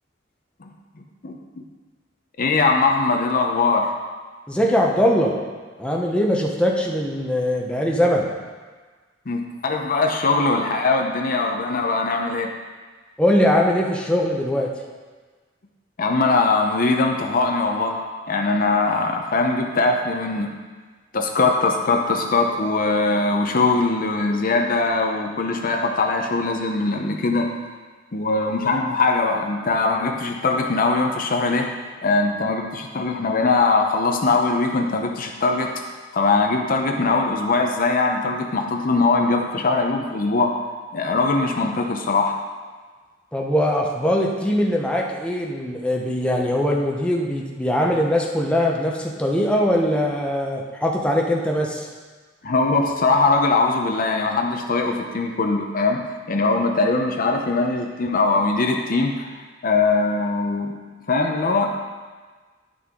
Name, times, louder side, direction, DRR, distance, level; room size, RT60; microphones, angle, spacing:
voice 1, 1.2-1.6 2.4-3.9 9.3-12.5 16.0-18.0 18.3-20.5 21.1-27.5 28.1-31.7 32.0-35.7 36.1-40.5 40.9-42.4 52.4-56.0 56.3-59.3 59.6-60.8 61.1-61.8, left 3 dB, 45° left, 2 dB, 0.7 m, -21 dB
voice 2, 4.5-5.3 5.8-8.3 13.2-14.7 43.3-51.9, equal, 5° left, -1 dB, 0.8 m, -21 dB
9.9 x 5.9 x 3.7 m, 1.4 s
head